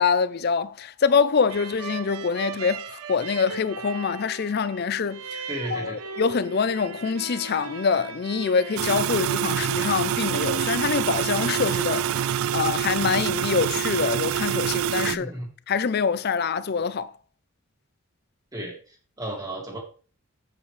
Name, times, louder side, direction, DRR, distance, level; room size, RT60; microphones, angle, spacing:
voice 1, 0.0-5.4 5.7-15.3 15.7-17.1, left 5 dB, 45° left, 0.5 m, -25 dB
sound 1, 1.5-12.9, right 5 dB, 85° right, 0.8 m, -38 dB
voice 2, 5.5-6.0 15.1-15.5 18.5-19.8, right 1 dB, 15° right, 2.2 m, -34 dB
sound 2, 8.8-15.2, right 9 dB, 70° right, 0.3 m, -26 dB
8.3 x 8.0 x 3.2 m
head